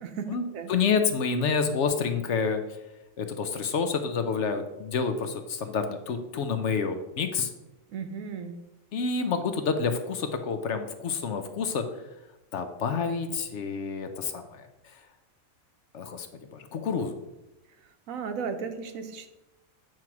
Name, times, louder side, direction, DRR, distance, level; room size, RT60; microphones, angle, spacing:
voice 1, 0.0-0.7 7.9-8.5 18.1-19.3, right 6 dB, 75° right, 8 dB, 1.2 m, -35 dB
voice 2, 0.7-2.6 3.2-7.5 8.9-11.8 12.5-14.9 15.9-17.2, left 5 dB, 65° left, 7 dB, 0.9 m, -28 dB
9.0 x 3.1 x 5.8 m, 0.95 s
omnidirectional pair, 1.4 m